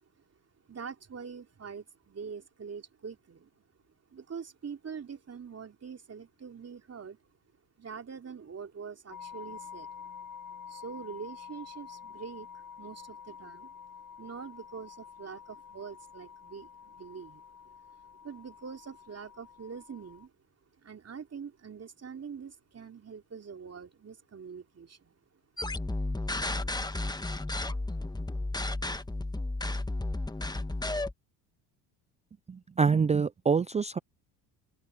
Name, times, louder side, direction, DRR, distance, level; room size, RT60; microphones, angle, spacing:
voice 1, 0.7-3.5 4.1-7.2 7.8-9.9 10.7-13.7 14.2-17.4 18.2-20.3 20.8-25.2, right 6 dB, 30° right, 3.4 m, -44 dB
sound 1, 9.1-20.3, left 7 dB, 40° left, 7.5 m, -48 dB
sound 2, 25.6-31.1, left 2 dB, 10° left, 1.3 m, -33 dB
voice 2, 32.5-34.0, right 5 dB, 15° right, 0.4 m, -26 dB
open air
supercardioid pair, 70°, 48 cm